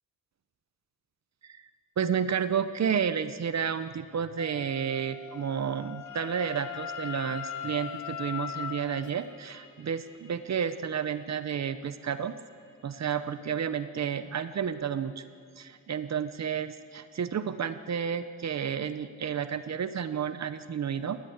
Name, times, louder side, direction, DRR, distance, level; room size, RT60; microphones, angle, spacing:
voice 1, 2.0-12.4 12.8-15.2 15.6-21.2, right 7 dB, 60° right, 11 dB, 0.9 m, -31 dB
Wind instrument woodwind instrument, 4.4-9.1, left 9 dB, 65° left, 0.8 m, -39 dB
sound 1, 6.1-17.4, left 1 dB, 85° left, 4.6 m, -57 dB
21.0 x 18.0 x 8.1 m, 2.2 s
wide cardioid pair, 110°, 31 cm